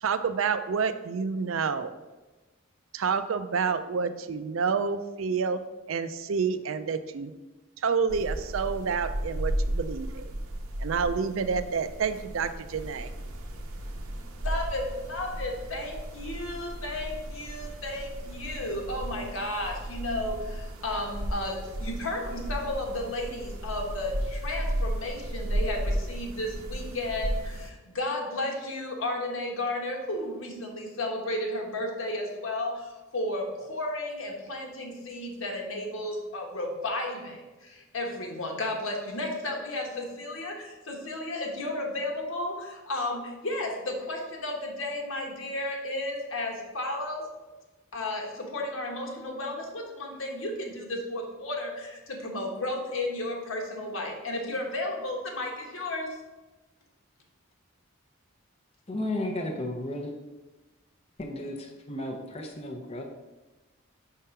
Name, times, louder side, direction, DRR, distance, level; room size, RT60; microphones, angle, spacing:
voice 1, 0.0-1.9 2.9-5.6 5.9-7.3 7.8-10.3 10.8-13.1, right 5 dB, 70° right, 11 dB, 0.4 m, -29 dB
sound 1, 8.1-27.7, right 1 dB, 85° right, 0.8 m, -34 dB
voice 2, 14.4-47.2 47.9-56.2, left 1 dB, 70° left, 1 dB, 1.2 m, -33 dB
voice 3, 58.9-60.1 61.2-63.0, left 1 dB, 30° left, 2 dB, 0.6 m, -33 dB
5.5 x 3.6 x 5.5 m, 1.1 s
head